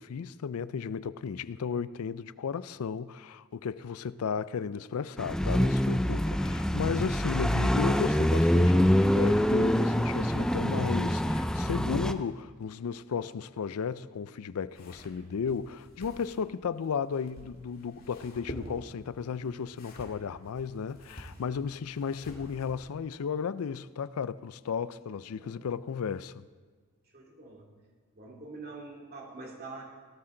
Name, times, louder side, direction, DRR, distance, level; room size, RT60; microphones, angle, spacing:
voice 1, 0.0-26.4, left 6 dB, 85° left, 0.4 m, -34 dB
sound 1, 5.2-12.1, equal, 5° left, 0.4 m, -25 dB
sound 2, 14.7-22.9, equal, 40° left, 2.2 m, -48 dB
voice 2, 25.3-25.6 27.1-27.7 28.1-29.8, right 3 dB, 45° right, 2.6 m, -45 dB
18.0 x 13.0 x 3.8 m
head